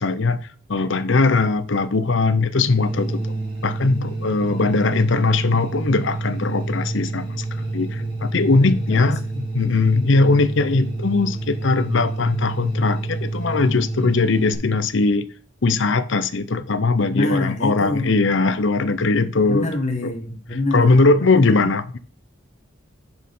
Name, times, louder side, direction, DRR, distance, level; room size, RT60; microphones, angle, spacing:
voice 1, 0.0-3.2 3.6-9.2 9.5-15.3 15.6-19.7 20.0-20.1 20.7-22.0, left 3 dB, 65° left, 0.7 m, -20 dB
sound 1, 2.8-14.5, right 2 dB, 25° right, 3.5 m, -28 dB
voice 2, 4.5-5.1 8.0-9.5 10.0-10.2 17.1-18.3 19.5-21.7, left 2 dB, 35° left, 1.6 m, -27 dB
6.5 x 6.2 x 5.4 m
head